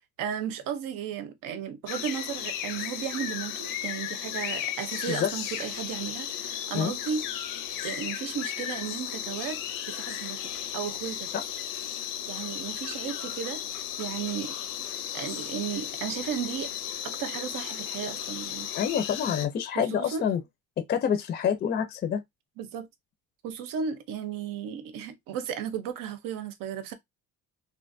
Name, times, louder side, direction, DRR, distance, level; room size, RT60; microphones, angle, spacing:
voice 1, 0.2-7.2 7.8-9.6 9.9-11.3 12.3-14.6 15.1-16.7 17.0-18.7 19.7-20.3 22.6-22.9 23.4-26.9, right 8 dB, 85° right, 0.8 m, -35 dB
sound 1, 1.9-19.5, left 10 dB, 85° left, 0.6 m, -35 dB
voice 2, 18.7-20.4 20.9-22.2, left 8 dB, 30° left, 0.4 m, -27 dB
3.3 x 2.5 x 2.6 m
cardioid pair, 170°, 32 cm